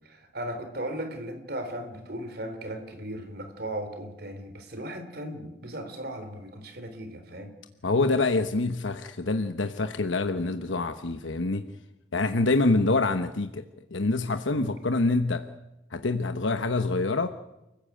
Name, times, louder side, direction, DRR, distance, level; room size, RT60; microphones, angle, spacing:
voice 1, 0.0-7.5 14.5-14.7, right 1 dB, 55° right, 7 dB, 3.8 m, -37 dB
voice 2, 7.8-11.6 12.1-13.6 13.9-15.5 15.9-17.3, left 3 dB, 85° left, 8 dB, 1.1 m, -26 dB
29.0 x 15.5 x 8.8 m, 0.96 s
head